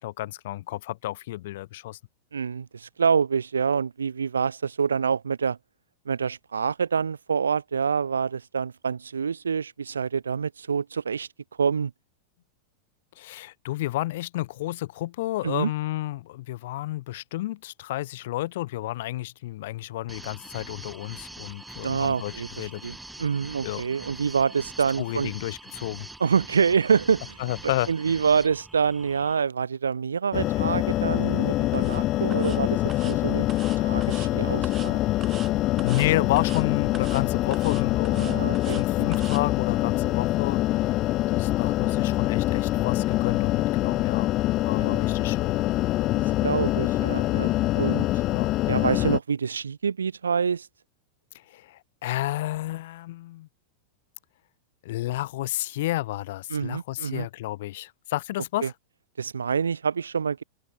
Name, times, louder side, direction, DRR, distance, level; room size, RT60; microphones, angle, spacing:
voice 1, 0.0-2.0 13.2-22.9 23.6-23.8 25.0-26.1 27.4-27.9 35.8-41.0 41.3-44.3 44.7-45.6 48.3-48.5 51.3-53.5 54.8-58.7, left 16 dB, 55° left, 0.9 m, -31 dB
voice 2, 2.3-5.6 6.1-11.3 11.6-11.9 15.4-15.7 21.8-25.3 26.2-27.4 27.6-33.5 33.8-35.0 38.2-39.1 44.8-45.0 46.2-48.1 48.7-50.7 56.5-57.3 58.6-58.7 59.2-60.4, right 6 dB, 75° right, 0.6 m, -26 dB
sound 1, 20.1-29.4, right 2 dB, 5° right, 3.8 m, -43 dB
sound 2, 30.3-49.2, left 16 dB, 35° left, 0.4 m, -25 dB
sound 3, 31.7-32.0 32.3-32.6 32.9-33.2 33.5-34.3 34.6-34.9 35.2-35.5 35.8-36.1 36.4-36.6 36.9-37.2 37.5-38.8 39.1-39.4, right 9 dB, 25° right, 0.7 m, -43 dB
figure-of-eight pair, 95°, 0 cm